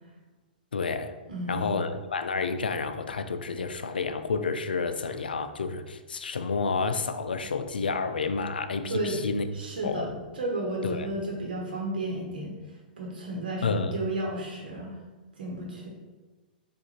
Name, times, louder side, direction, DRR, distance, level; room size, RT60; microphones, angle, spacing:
voice 1, 0.7-1.2 1.5-9.5 9.8-10.1 10.8-11.1 13.6-14.0, left 4 dB, 85° left, 9 dB, 0.4 m, -30 dB
voice 2, 1.3-1.8 8.9-9.2 9.5-12.6 13.0-14.9 15.4-15.9, right 1 dB, 75° right, -2 dB, 1.0 m, -33 dB
4.8 x 2.5 x 4.2 m, 1.2 s
hypercardioid pair, 110°, 5 cm